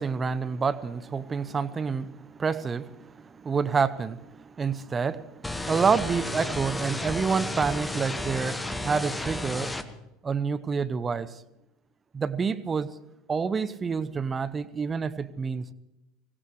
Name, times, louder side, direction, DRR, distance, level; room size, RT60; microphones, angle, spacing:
voice 1, 0.0-9.8 10.2-11.3 12.1-13.0 13.3-15.7, right 5 dB, 25° right, 0.8 m, -28 dB
sound 1, 5.4-9.8, left 2 dB, 10° left, 1.1 m, -32 dB
24.5 x 16.5 x 3.2 m
figure-of-eight pair, 75°, 0 cm